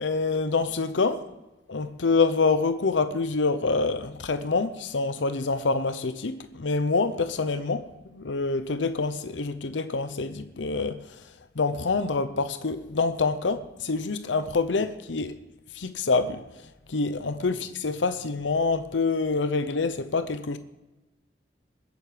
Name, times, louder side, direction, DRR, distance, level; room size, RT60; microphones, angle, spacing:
voice 1, 0.0-1.4 1.7-11.2 11.6-15.4 15.7-16.5 16.9-20.6, left 4 dB, 85° left, 0.7 m, -26 dB
21.0 x 8.2 x 5.1 m
head